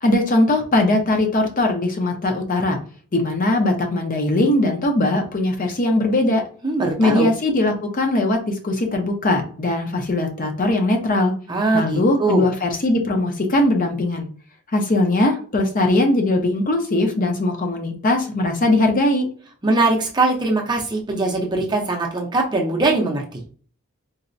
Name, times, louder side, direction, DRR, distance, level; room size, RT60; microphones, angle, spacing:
voice 1, 0.0-2.8 3.1-6.4 7.0-11.3 11.7-14.3 14.7-19.3, left 2 dB, 40° left, 3 dB, 0.5 m, -20 dB
voice 2, 6.6-7.3 11.5-12.4 19.6-23.4, right 2 dB, 20° right, 0 dB, 0.5 m, -21 dB
3.9 x 2.1 x 2.5 m, 0.43 s
head